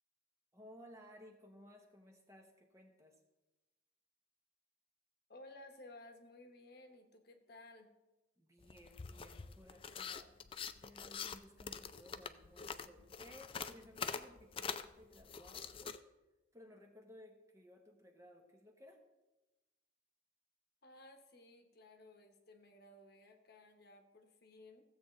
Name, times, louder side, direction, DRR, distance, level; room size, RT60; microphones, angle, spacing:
voice 1, 0.5-3.2 8.4-10.3 10.8-16.0 16.5-19.0, equal, 15° right, 3 dB, 1.0 m, -59 dB
voice 2, 5.3-7.9 20.8-24.8, left 2 dB, 55° left, 4 dB, 1.1 m, -57 dB
sound 1, 8.6-16.0, left 6 dB, 30° left, 0.3 m, -45 dB
15.5 x 7.8 x 3.2 m, 1.1 s
head